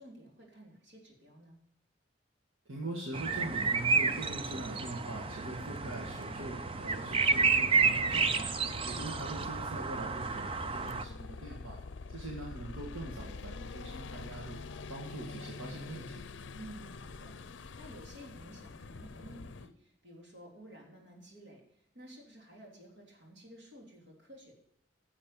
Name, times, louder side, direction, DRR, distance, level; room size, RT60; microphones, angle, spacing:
voice 1, 0.0-1.6 16.6-24.5, right 1 dB, 70° right, -1 dB, 3.4 m, -53 dB
voice 2, 2.7-8.5 8.8-11.8 12.1-14.6 14.9-16.2, right 2 dB, 85° right, -2 dB, 1.8 m, -42 dB
sound 1, 3.1-11.0, right 5 dB, 25° right, 0.5 m, -31 dB
sound 2, 4.0-19.7, left 4 dB, 65° left, 0.5 m, -46 dB
10.5 x 7.1 x 6.8 m, 0.71 s
head